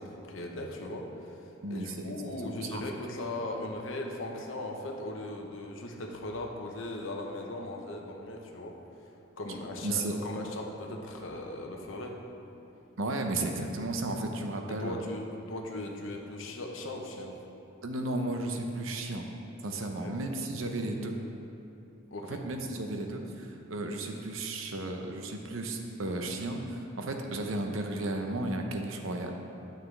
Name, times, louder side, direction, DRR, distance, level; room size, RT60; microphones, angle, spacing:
voice 1, 0.0-1.4 1.7-8.8 9.4-12.2 14.7-17.3 19.8-20.2 22.1-22.4 22.8-22.9, left 1 dB, 75° left, 1 dB, 0.9 m, -38 dB
voice 2, 1.6-2.0 2.4-2.8 9.8-10.1 13.0-15.0 17.8-19.2 19.6-21.1 22.3-29.4, right 2 dB, 90° right, 3 dB, 0.7 m, -34 dB
9.3 x 6.5 x 3.3 m, 2.8 s
head